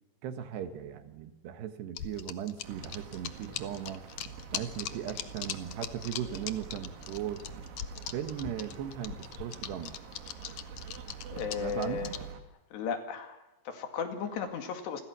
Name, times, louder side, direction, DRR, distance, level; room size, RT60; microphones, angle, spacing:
voice 1, 0.2-4.0 4.5-7.5 8.1-9.9 11.6-12.2, right 10 dB, 70° right, 9 dB, 3.4 m, -38 dB
sound 1, 2.0-12.3, left 11 dB, 90° left, 1.6 m, -40 dB
sound 2, 2.6-12.4, right 6 dB, 85° right, 4.7 m, -46 dB
voice 2, 11.3-12.1 12.7-15.0, left 7 dB, 70° left, 6 dB, 4.2 m, -35 dB
29.5 x 23.5 x 6.1 m, 0.99 s
omnidirectional pair, 5.3 m